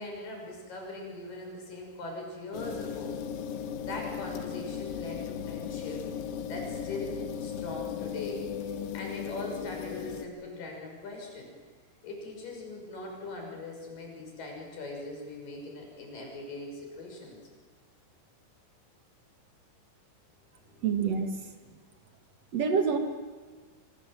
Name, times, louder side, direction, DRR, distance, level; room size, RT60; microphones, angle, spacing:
voice 1, 0.0-3.2 3.8-6.0 6.5-8.5 8.9-11.5 12.0-17.4 20.7-20.9, left 2 dB, 45° left, 1 dB, 7.7 m, -41 dB
sound 1, 2.5-10.3, left 8 dB, 80° left, 3.7 m, -37 dB
voice 2, 20.8-21.3 22.5-23.0, right 6 dB, 55° right, 5 dB, 2.0 m, -26 dB
25.0 x 24.0 x 7.6 m, 1.5 s
omnidirectional pair, 5.4 m